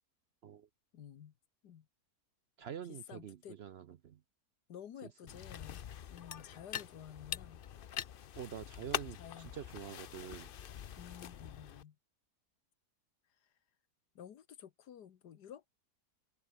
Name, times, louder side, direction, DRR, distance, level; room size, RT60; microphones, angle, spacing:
voice 1, 0.9-1.3 1.6-1.9 2.9-3.6 4.7-5.8 6.1-7.6 9.1-9.5 11.0-12.0 14.1-15.7, left 9 dB, 85° left, 1.8 m, -52 dB
voice 2, 2.6-4.2 8.4-10.5, right 9 dB, 60° right, 0.7 m, -46 dB
sound 1, 5.3-11.8, left 9 dB, 60° left, 0.5 m, -44 dB
open air
omnidirectional pair, 1.7 m